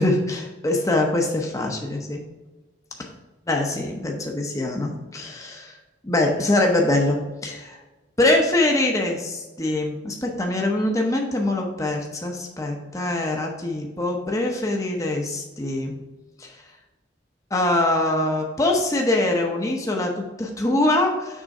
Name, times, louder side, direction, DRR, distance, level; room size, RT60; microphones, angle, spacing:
voice 1, 0.0-2.2 3.5-5.8 6.0-7.8 8.2-15.9 16.4-16.5 17.5-21.4, left 2 dB, 20° left, 1 dB, 0.8 m, -23 dB
6.3 x 3.7 x 5.2 m, 1.1 s
head